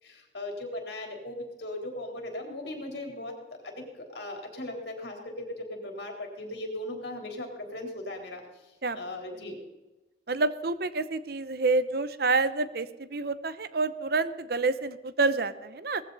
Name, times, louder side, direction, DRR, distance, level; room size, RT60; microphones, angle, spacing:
voice 1, 0.0-3.3 3.6-9.5, left 1 dB, 70° left, 2 dB, 3.8 m, -38 dB
voice 2, 10.3-16.0, right 3 dB, 60° right, 13 dB, 0.9 m, -28 dB
19.0 x 15.0 x 4.1 m, 1.0 s
head